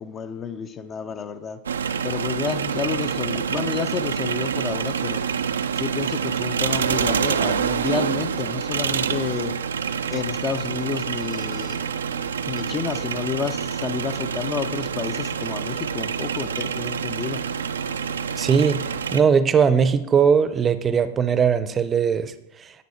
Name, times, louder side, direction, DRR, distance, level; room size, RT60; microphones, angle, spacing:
voice 1, 0.0-1.6 2.0-5.2 5.7-9.5 10.1-11.8 12.5-17.4, left 6 dB, 25° left, 0.6 m, -30 dB
sound 1, 1.7-19.2, right 7 dB, 70° right, 0.4 m, -27 dB
voice 2, 18.4-22.8, right 6 dB, 20° right, 0.7 m, -20 dB
11.0 x 8.3 x 4.4 m
figure-of-eight pair, 90°, 0 cm